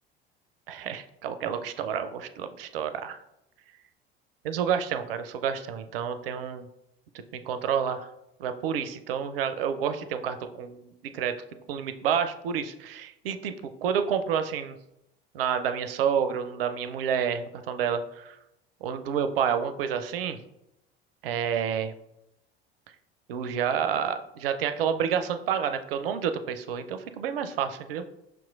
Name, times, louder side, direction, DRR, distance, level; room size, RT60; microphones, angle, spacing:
voice 1, 0.7-3.2 4.4-6.7 7.4-8.1 8.4-11.3 11.7-14.7 15.3-18.4 18.8-20.4 21.2-21.9 23.3-28.1, right 8 dB, 65° right, 10 dB, 0.4 m, -29 dB
5.9 x 2.9 x 2.4 m, 0.85 s
figure-of-eight pair, 65°, 31 cm